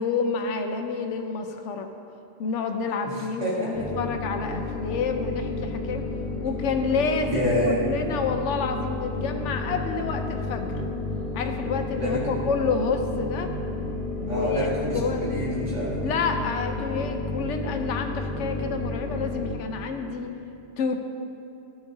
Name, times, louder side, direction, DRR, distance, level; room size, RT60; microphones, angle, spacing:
voice 1, 0.0-1.9 2.4-6.1 6.4-7.5 7.9-10.8 11.3-13.5 14.2-15.2 16.0-20.3 20.8-21.0, left 5 dB, 90° left, 6 dB, 0.9 m, -29 dB
voice 2, 3.1-3.9 7.3-7.9 12.0-12.3 14.3-16.2, equal, 85° right, -7 dB, 2.1 m, -28 dB
sound 1, 3.7-19.5, left 2 dB, 50° left, 1.9 m, -31 dB
13.5 x 7.1 x 2.6 m, 2.7 s
omnidirectional pair, 1.2 m